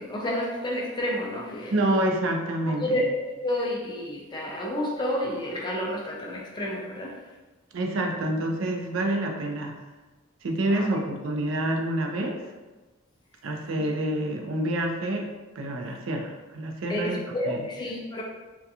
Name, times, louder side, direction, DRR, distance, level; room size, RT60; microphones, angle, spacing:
voice 1, 0.0-1.7 2.7-7.2 10.7-10.9 13.8-13.9 16.9-18.2, left 1 dB, 20° left, -2 dB, 0.3 m, -30 dB
voice 2, 1.7-3.0 7.7-9.8 10.4-12.4 13.4-15.3 15.6-17.2 17.4-17.7, right 1 dB, 70° right, 2 dB, 0.4 m, -27 dB
2.7 x 2.2 x 2.3 m, 1.2 s
head